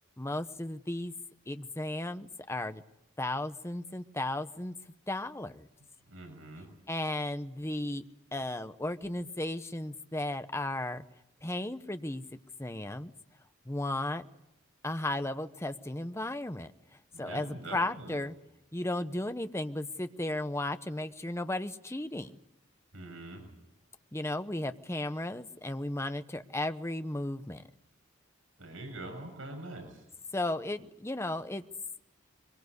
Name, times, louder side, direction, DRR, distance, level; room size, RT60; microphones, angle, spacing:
voice 1, 0.2-1.1 1.5-2.8 3.2-4.7 5.1-5.6 6.9-8.0 8.3-11.0 11.4-12.2 12.6-13.1 13.7-14.2 14.8-16.7 17.2-18.4 18.7-22.4 24.1-27.6 30.3-31.6, left 1 dB, 15° left, 10 dB, 0.9 m, -35 dB
voice 2, 6.1-6.7 17.1-18.2 22.9-23.4 28.6-30.0, right 2 dB, 70° right, 3 dB, 6.9 m, -44 dB
23.5 x 22.0 x 8.2 m, 0.84 s
head